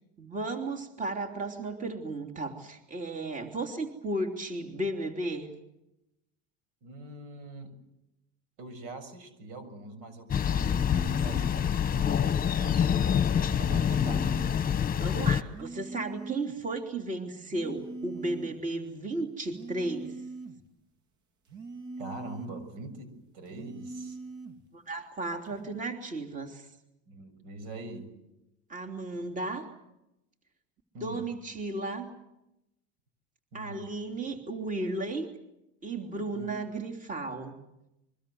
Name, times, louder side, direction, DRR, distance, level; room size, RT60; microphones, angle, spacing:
voice 1, 0.2-5.5 15.0-20.1 24.7-26.7 28.7-29.7 31.0-32.1 33.5-35.3 35.8-37.6, right 2 dB, 20° right, 3 dB, 3.3 m, -34 dB
voice 2, 6.8-7.7 8.6-12.9 13.6-14.2 22.0-24.2 27.1-28.1 30.9-31.3 33.5-33.9 36.3-36.5, right 2 dB, 80° right, 11 dB, 7.0 m, -43 dB
Thunder, 10.3-15.4, left 8 dB, 25° left, 1.3 m, -26 dB
sound 1, 10.5-11.6 13.5-14.6 15.5-16.6 17.5-18.6 19.5-20.6 21.5-22.6 23.5-24.6 25.5-25.8, right 3 dB, 55° right, 3.3 m, -42 dB
26.5 x 23.5 x 7.9 m, 0.89 s
supercardioid pair, 115°, 35 cm